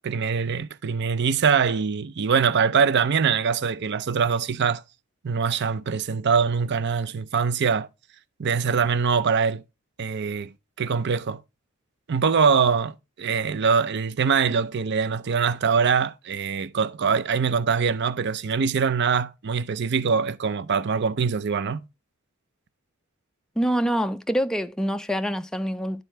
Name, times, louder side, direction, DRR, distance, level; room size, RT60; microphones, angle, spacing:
voice 1, 0.0-4.8 5.2-7.9 8.4-9.6 10.0-10.5 10.8-11.4 12.1-21.8, right 6 dB, 55° right, 0.5 m, -23 dB
voice 2, 23.6-26.0, equal, 5° left, 0.3 m, -25 dB
11.0 x 3.9 x 4.4 m
head